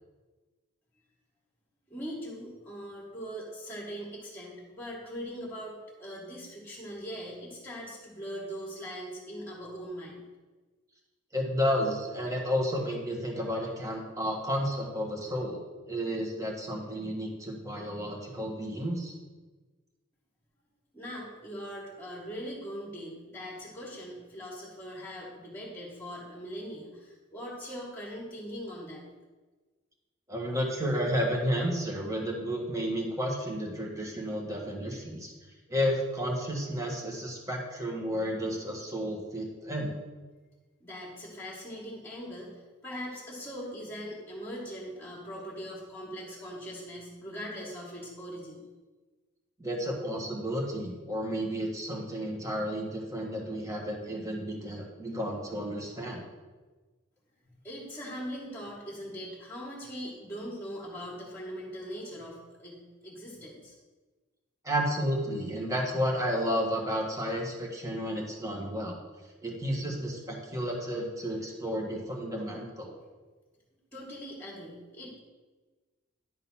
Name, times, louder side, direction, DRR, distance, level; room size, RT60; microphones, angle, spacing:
voice 1, 1.9-10.2 20.9-29.0 40.8-48.6 57.6-63.7 73.9-75.2, equal, 10° left, -7 dB, 1.8 m, -41 dB
voice 2, 11.3-19.1 30.3-35.3 35.7-39.9 49.6-56.2 64.6-69.0 69.4-73.0, equal, 15° right, 0 dB, 1.4 m, -32 dB
10.5 x 3.9 x 5.6 m, 1.3 s
head